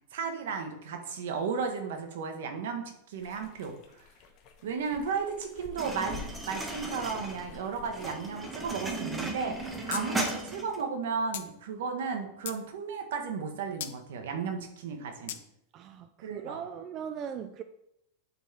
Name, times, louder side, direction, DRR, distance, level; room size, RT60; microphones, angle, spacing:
voice 1, 0.1-3.7 4.6-15.3 16.2-16.6, right 5 dB, 75° right, 1.3 m, -34 dB
sound 1, 3.1-10.0, left 6 dB, 35° left, 1.0 m, -50 dB
sound 2, 5.8-10.8, right 2 dB, 10° right, 0.8 m, -36 dB
sound 3, 9.9-10.0 10.3-10.4 11.3-11.5 12.1-12.6 13.8-14.0 15.3-15.4, left 11 dB, 70° left, 0.6 m, -37 dB
voice 2, 15.7-17.6, right 8 dB, 30° right, 0.3 m, -39 dB
8.1 x 4.6 x 4.3 m
supercardioid pair, 170°, 0 cm